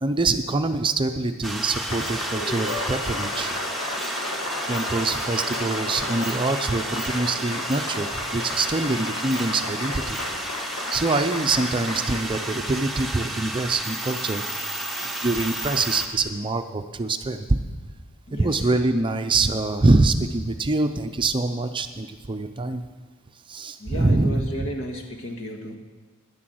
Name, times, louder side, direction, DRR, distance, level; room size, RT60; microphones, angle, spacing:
voice 1, 0.0-3.5 4.7-10.2 10.9-14.4 15.2-17.6 18.4-22.8 23.5-24.7, right 3 dB, 20° right, 7 dB, 0.5 m, -24 dB
sound 1, 1.4-16.1, right 1 dB, ahead, 0.9 m, -32 dB
Applause, 1.5-13.4, left 2 dB, 80° left, 1.8 m, -33 dB
voice 2, 18.3-18.8 23.8-25.8, equal, 60° left, 3 dB, 1.7 m, -34 dB
10.0 x 10.0 x 7.7 m, 1.3 s
head